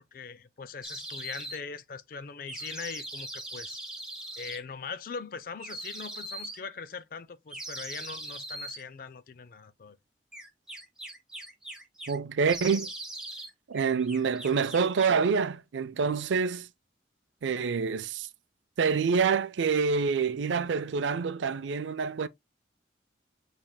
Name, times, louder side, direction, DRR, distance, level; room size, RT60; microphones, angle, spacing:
voice 1, 0.0-3.8 4.4-10.0, left 5 dB, 50° left, 0.4 m, -41 dB
sound 1, 0.8-1.6 2.5-4.6 5.6-6.6 7.5-8.8 10.3-12.2 12.4-13.5 13.8-15.2, right 1 dB, 5° right, 0.9 m, -40 dB
voice 2, 12.1-12.9 13.7-16.7 17.4-18.3 18.8-22.3, right 5 dB, 80° right, 0.4 m, -27 dB
7.3 x 3.3 x 2.2 m
head